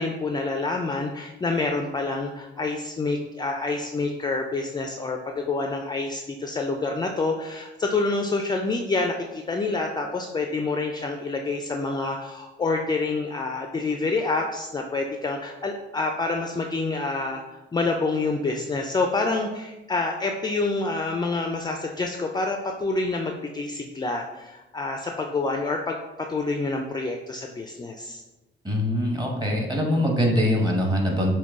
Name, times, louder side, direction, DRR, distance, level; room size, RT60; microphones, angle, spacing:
voice 1, 0.0-28.2, left 3 dB, 20° left, 3 dB, 0.4 m, -27 dB
voice 2, 28.6-31.3, left 1 dB, 20° right, 0 dB, 1.2 m, -23 dB
6.0 x 2.3 x 3.6 m, 1.0 s
cardioid pair, 90°, 20 cm